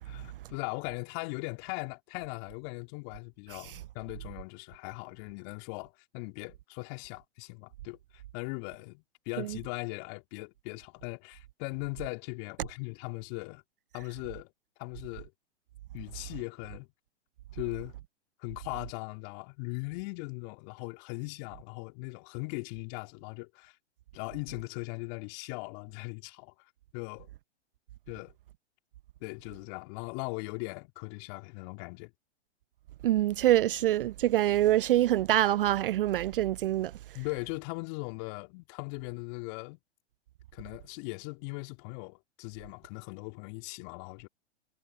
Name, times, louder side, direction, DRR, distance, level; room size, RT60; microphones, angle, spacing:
voice 1, 0.0-8.0 8.3-13.6 13.9-14.5 14.8-15.3 15.9-16.9 17.5-18.0 18.4-23.8 24.1-26.5 26.9-27.3 28.1-28.3 29.2-32.1 37.1-39.8 40.5-44.3, left 34 dB, 40° left, 4.0 m, -39 dB
voice 2, 33.0-36.9, right 13 dB, 50° right, 0.4 m, -25 dB
figure-of-eight pair, 115°, 35 cm